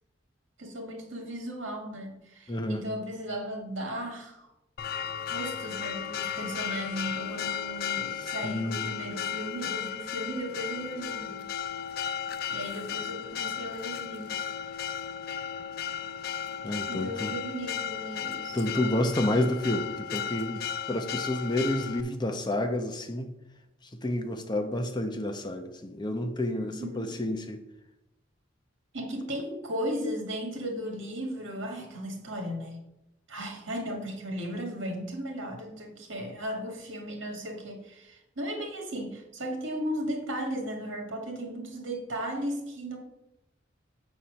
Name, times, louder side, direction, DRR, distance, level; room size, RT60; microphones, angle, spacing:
voice 1, 0.6-4.5 5.3-11.5 12.5-14.4 16.9-18.7 26.5-27.1 28.9-32.8 33.3-43.0, equal, 85° right, 2.1 m, -36 dB
voice 2, 2.5-2.8 8.4-8.8 16.6-17.3 18.5-23.3 24.0-27.6, left 1 dB, 20° left, 0.8 m, -30 dB
Church bell, 4.8-22.0, left 8 dB, 50° left, 0.4 m, -35 dB
7.6 x 4.3 x 6.4 m
head